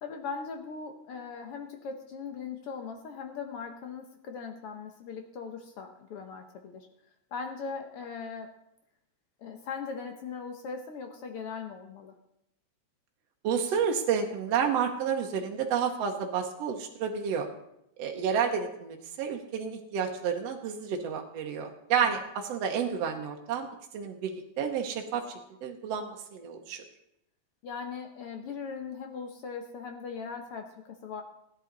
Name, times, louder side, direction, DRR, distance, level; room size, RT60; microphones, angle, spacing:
voice 1, 0.0-6.9 7.3-8.5 9.4-12.1 27.6-31.2, left 5 dB, 65° left, 5 dB, 1.6 m, -39 dB
voice 2, 13.4-17.5 18.0-23.7 23.9-25.2 25.6-26.8, right 7 dB, 65° right, 2 dB, 1.9 m, -30 dB
15.5 x 10.0 x 4.0 m, 0.80 s
omnidirectional pair, 3.3 m